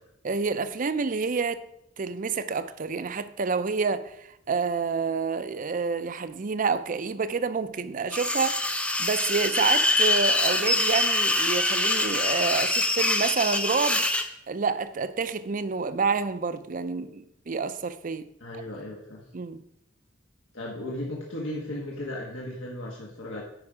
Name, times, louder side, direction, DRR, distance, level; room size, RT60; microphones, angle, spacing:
voice 1, 0.2-1.6 2.0-14.1 14.5-18.3 19.3-19.6, right 5 dB, 45° right, 0.5 m, -28 dB
sound 1, 8.1-14.3, left 1 dB, 5° left, 0.5 m, -24 dB
voice 2, 18.4-19.2 20.5-23.4, left 1 dB, 85° left, 1.4 m, -35 dB
9.6 x 5.2 x 4.9 m
head